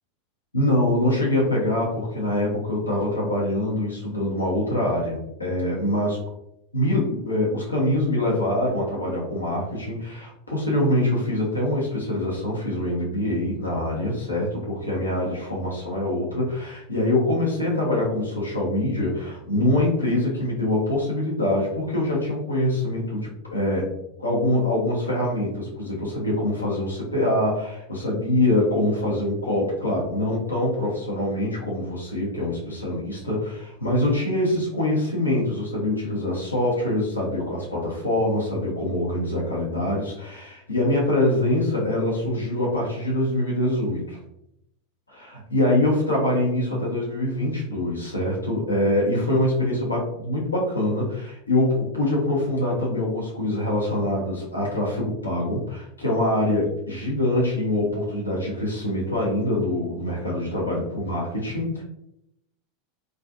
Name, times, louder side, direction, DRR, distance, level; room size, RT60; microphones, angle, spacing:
voice 1, 0.5-6.2 6.7-23.9 24.2-44.2 45.1-61.8, left 1 dB, 85° left, -4 dB, 0.7 m, -24 dB
2.4 x 2.3 x 2.4 m, 0.79 s
figure-of-eight pair, 85°, 0 cm